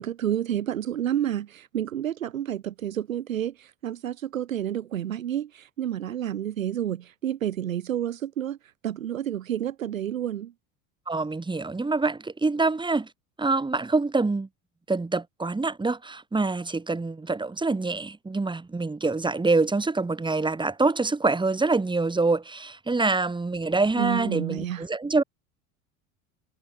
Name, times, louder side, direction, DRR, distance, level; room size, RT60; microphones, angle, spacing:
voice 1, 0.0-8.6 8.8-10.5 24.0-24.8, right 11 dB, 75° right, 1.2 m, -30 dB
voice 2, 11.1-13.1 13.4-14.5 14.9-25.2, right 3 dB, 10° right, 3.5 m, -25 dB
figure-of-eight pair, 70°, 40 cm